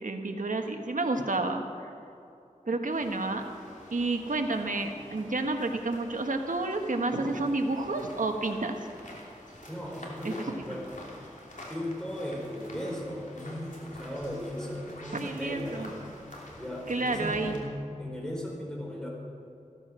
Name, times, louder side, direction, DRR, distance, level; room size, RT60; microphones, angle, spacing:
voice 1, 0.0-1.6 2.7-3.5 3.9-8.8 10.2-10.8 15.1-15.9 16.9-17.6, right 2 dB, 90° right, 5 dB, 1.4 m, -30 dB
sound 1, 2.9-17.6, left 1 dB, 75° left, 3.1 m, -48 dB
voice 2, 9.7-11.0 11.7-16.0 16.6-19.1, equal, 5° left, -2 dB, 4.6 m, -37 dB
15.5 x 14.5 x 6.3 m, 2.7 s
wide cardioid pair, 60°, 13 cm